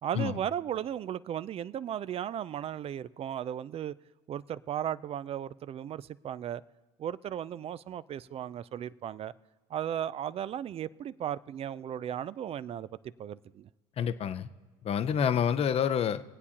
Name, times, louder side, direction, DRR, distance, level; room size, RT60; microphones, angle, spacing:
voice 1, 0.0-3.9 4.3-6.6 7.0-9.3 9.7-12.9 13.2-13.7, right 10 dB, 40° right, 17 dB, 0.4 m, -36 dB
voice 2, 14.0-14.5 14.8-16.2, left 8 dB, 40° left, 12 dB, 0.6 m, -28 dB
23.0 x 8.2 x 2.9 m, 1.3 s
hypercardioid pair, 80°, 16 cm